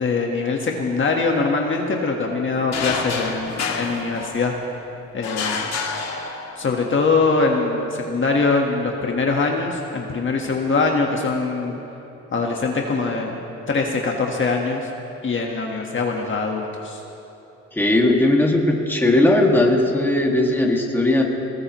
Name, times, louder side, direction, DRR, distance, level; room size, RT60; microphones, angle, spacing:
voice 1, 0.0-4.5 5.1-5.7 6.5-11.8 12.3-13.4 13.7-14.9 15.2-17.0, left 4 dB, 40° left, 0 dB, 1.5 m, -22 dB
sound 1, 2.7-4.7 5.2-6.8, left 4 dB, 60° left, 2.1 m, -28 dB
voice 2, 17.7-21.2, left 1 dB, 5° left, -1 dB, 2.0 m, -18 dB
20.5 x 20.0 x 3.1 m, 3.0 s
cardioid pair, 90°, 30 cm